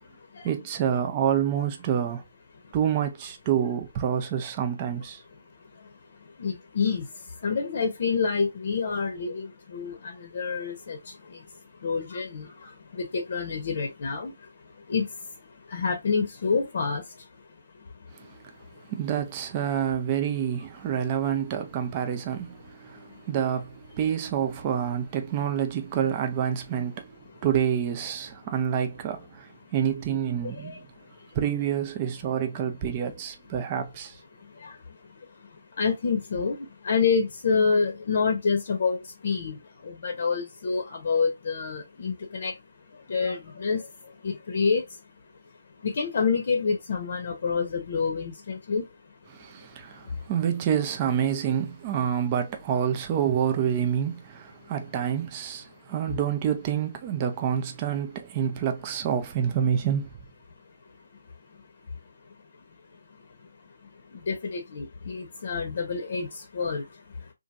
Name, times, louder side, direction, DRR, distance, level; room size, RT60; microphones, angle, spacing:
voice 1, 0.4-2.2 2.7-5.2 18.1-18.5 18.9-30.9 31.3-34.2 49.3-60.1, right 9 dB, 30° right, 0.4 m, -28 dB
voice 2, 6.4-7.1 7.4-11.0 11.3-11.4 11.8-12.5 12.9-14.3 14.9-15.1 15.7-17.0 30.6-30.8 34.6-34.7 35.8-39.6 39.8-42.5 43.1-43.9 44.2-44.8 45.8-48.8 64.3-66.9, left 5 dB, 55° left, 0.7 m, -27 dB
2.9 x 2.5 x 2.4 m
hypercardioid pair, 155°, 0 cm